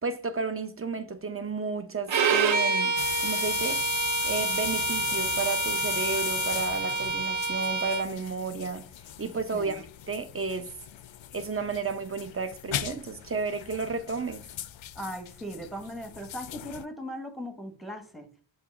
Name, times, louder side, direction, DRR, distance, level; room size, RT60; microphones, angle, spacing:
voice 1, 0.0-3.8 4.2-8.8 9.2-10.7 11.3-14.4, right 4 dB, 30° right, 0.8 m, -32 dB
Bowed string instrument, 2.1-8.1, right 4 dB, 70° right, 0.8 m, -28 dB
sound 1, 3.0-16.8, left 11 dB, 75° left, 0.5 m, -37 dB
voice 2, 14.9-18.3, equal, ahead, 1.1 m, -38 dB
7.3 x 3.0 x 5.2 m
wide cardioid pair, 95°, 47 cm